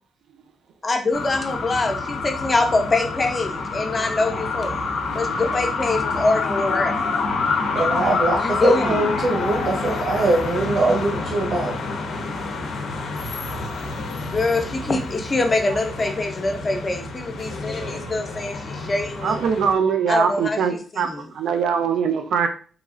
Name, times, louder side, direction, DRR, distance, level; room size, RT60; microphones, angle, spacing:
voice 1, 0.8-4.8 5.1-7.0 8.4-9.0 14.3-19.4 20.1-21.3, left 2 dB, 25° left, 4 dB, 0.5 m, -24 dB
sound 1, 1.1-19.7, left 3 dB, 80° left, 0.5 m, -27 dB
voice 2, 7.7-11.8, right 2 dB, 60° right, -2 dB, 0.7 m, -22 dB
voice 3, 17.8-18.1 19.2-22.5, right 6 dB, 85° right, 7 dB, 0.4 m, -22 dB
3.0 x 2.4 x 2.4 m, 0.40 s
wide cardioid pair, 160°, 0 cm